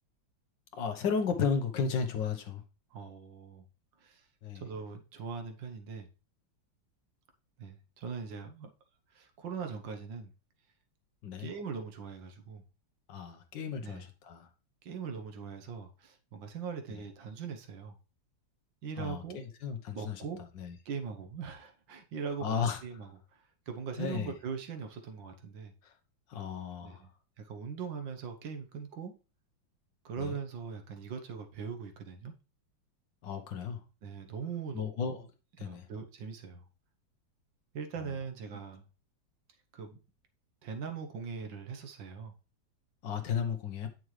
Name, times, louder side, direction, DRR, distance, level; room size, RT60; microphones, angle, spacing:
voice 1, 0.7-2.6 4.4-4.6 11.2-11.5 13.1-14.5 19.0-20.2 20.5-20.8 22.4-22.8 24.0-24.3 26.3-27.0 30.2-30.4 33.2-33.8 34.7-35.3 35.6-35.9 38.0-38.1 43.0-43.9, left 6 dB, 70° left, 1.7 m, -34 dB
voice 2, 2.9-3.6 4.0-4.2 4.6-6.1 7.6-8.7 9.2-10.3 11.4-12.6 13.8-14.1 14.8-18.0 18.8-19.4 19.9-20.4 20.9-22.6 22.8-23.1 23.7-25.7 26.8-27.1 27.4-29.1 30.1-32.3 34.0-35.2 35.6-36.6 37.7-38.9 39.7-40.0 40.6-42.3, right 6 dB, 75° right, 1.7 m, -41 dB
8.9 x 6.2 x 3.2 m
omnidirectional pair, 2.1 m